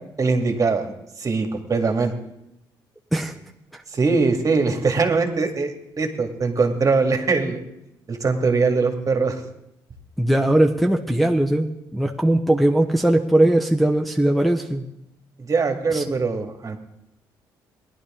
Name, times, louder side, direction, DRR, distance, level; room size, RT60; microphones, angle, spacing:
voice 1, 0.2-0.9 1.2-2.1 3.9-7.6 8.1-9.4 15.4-16.8, right 4 dB, 40° right, 5 dB, 2.0 m, -22 dB
voice 2, 10.2-14.9 15.9-16.0, right 1 dB, ahead, 1 dB, 1.0 m, -19 dB
17.5 x 11.5 x 3.7 m, 0.84 s
supercardioid pair, 65°, 9 cm